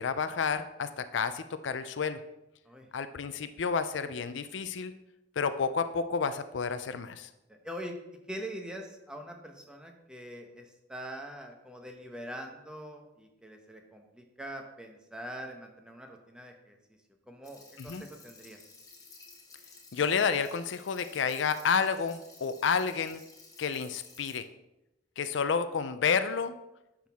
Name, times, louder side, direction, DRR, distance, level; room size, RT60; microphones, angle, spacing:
voice 1, 0.0-2.2 2.9-4.9 5.4-7.3 17.8-18.0 19.9-23.2 23.6-24.5 25.2-26.5, left 6 dB, 75° left, 11 dB, 0.5 m, -30 dB
voice 2, 7.5-7.9 8.3-16.8 17.3-18.6, right 1 dB, 5° right, 3 dB, 1.0 m, -43 dB
sound 1, 17.4-24.4, left 4 dB, 20° left, 1.6 m, -54 dB
10.5 x 6.1 x 3.6 m, 0.93 s
head